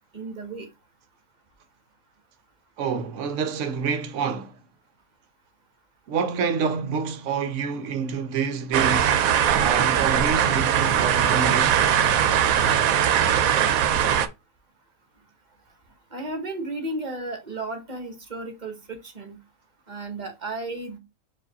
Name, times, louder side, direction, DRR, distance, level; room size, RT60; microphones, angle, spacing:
voice 1, 0.1-0.7 7.6-7.7 16.1-19.4 19.9-21.0, right 2 dB, 35° right, 1.1 m, -34 dB
voice 2, 2.8-4.6 6.1-9.2 9.6-12.0, right 6 dB, 70° right, 0.9 m, -28 dB
sound 1, 8.7-14.3, right 9 dB, 90° right, 1.0 m, -20 dB
4.8 x 2.7 x 3.9 m
omnidirectional pair, 1.4 m